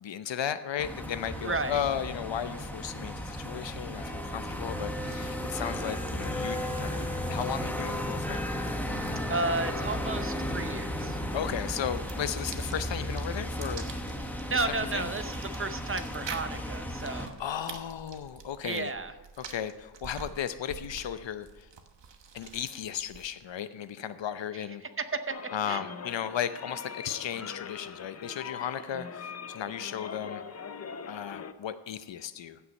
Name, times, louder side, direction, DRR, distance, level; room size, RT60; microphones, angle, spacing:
voice 1, 0.0-8.5 11.3-13.8 14.9-15.1 17.1-18.9 19.4-21.7 22.3-24.8 25.5-30.4 31.1-32.6, left 9 dB, 80° left, 12 dB, 0.7 m, -35 dB
sound 1, 0.8-17.3, equal, 5° left, 1.1 m, -34 dB
voice 2, 1.4-1.8 9.3-11.2 14.5-17.4 18.6-19.1 25.0-25.3 25.7-25.8, right 3 dB, 30° right, 10 dB, 0.7 m, -32 dB
sound 2, 5.5-23.5, right 6 dB, 70° right, 1.2 m, -48 dB
sound 3, 25.3-31.5, left 6 dB, 35° left, 0.5 m, -42 dB
15.5 x 5.9 x 5.3 m, 1.2 s
wide cardioid pair, 135°, 44 cm